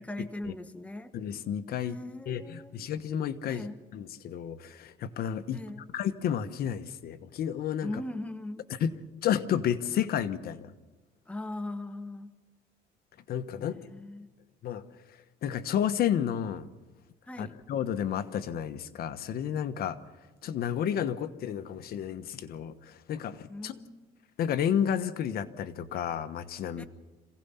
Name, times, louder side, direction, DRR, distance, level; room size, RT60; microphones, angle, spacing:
voice 1, 0.0-1.1 1.8-2.8 3.5-3.8 5.5-5.9 7.8-8.7 11.3-12.3 13.5-14.3 17.3-17.5 23.5-24.2 26.8-26.9, left 1 dB, 10° left, 10 dB, 1.3 m, -40 dB
voice 2, 1.1-1.9 2.3-3.7 3.9-5.6 5.9-7.9 8.8-8.9 9.2-10.6 13.3-13.8 14.6-14.8 15.4-16.7 17.4-20.0 20.4-23.7 24.4-26.9, left 9 dB, 65° left, 11 dB, 1.1 m, -31 dB
27.0 x 17.0 x 5.7 m, 1.2 s
cardioid pair, 110°, 17 cm